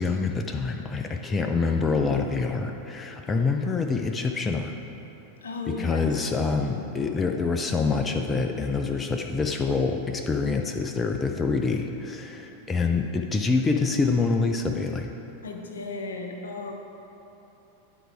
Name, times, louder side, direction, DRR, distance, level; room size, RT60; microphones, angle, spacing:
voice 1, 0.0-4.7 5.8-15.1, left 4 dB, 15° left, 4 dB, 0.4 m, -26 dB
voice 2, 5.4-6.2 15.4-16.7, left 3 dB, 65° left, 3 dB, 0.8 m, -35 dB
10.0 x 4.6 x 4.7 m, 3.0 s
figure-of-eight pair, 90°, 0 cm